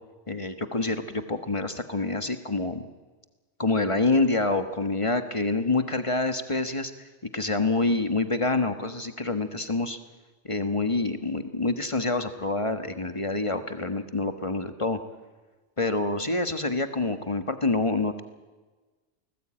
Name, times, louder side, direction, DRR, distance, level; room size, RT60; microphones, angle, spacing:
voice 1, 0.3-2.9 3.6-6.9 7.3-10.0 10.4-15.0 15.8-18.2, left 3 dB, 25° left, 8 dB, 1.4 m, -27 dB
28.5 x 19.5 x 8.8 m, 1.3 s
omnidirectional pair, 1.2 m